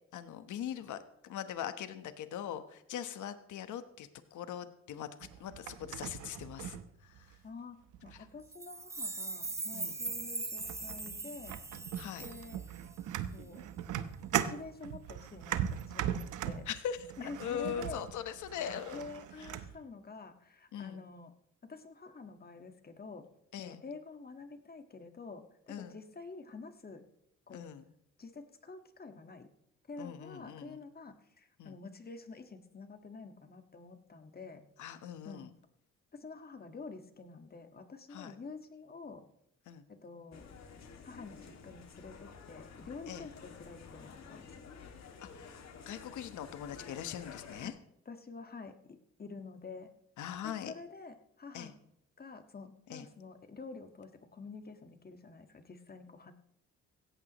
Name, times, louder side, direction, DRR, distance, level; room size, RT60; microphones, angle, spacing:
voice 1, 0.1-5.1 5.4-6.7 7.0-7.4 9.7-10.0 12.0-12.3 16.7-17.1 17.4-19.0 19.4-19.5 20.7-21.0 23.5-23.8 25.7-26.0 27.5-27.8 30.0-30.8 31.6-31.7 34.8-35.5 38.1-38.3 39.7-39.8 43.1-43.3 45.3-47.7 50.2-50.7 51.5-51.7 52.9-53.0, left 9 dB, 75° left, 10 dB, 1.2 m, -41 dB
sound 1, 5.2-7.4 7.9-8.4 9.4-9.5 10.1-10.3 10.6-19.8, right 10 dB, 80° right, 0.9 m, -39 dB
voice 2, 7.4-11.6 12.2-12.6 13.3-13.7 14.3-16.7 17.2-18.0 18.9-21.3 21.6-23.3 23.6-27.0 27.5-27.6 28.2-29.5 29.9-34.7 35.2-35.5 36.1-39.3 39.9-40.5 41.0-44.6 47.6-47.7 48.0-49.9 50.4-51.7 52.2-56.3, left 4 dB, 30° left, 7 dB, 1.6 m, -48 dB
sound 2, 8.5-13.0, right 3 dB, 10° right, 0.4 m, -40 dB
sound 3, 40.3-47.7, left 5 dB, 60° left, 2.3 m, -51 dB
16.5 x 15.0 x 3.1 m, 0.75 s
cardioid pair, 90°, 30 cm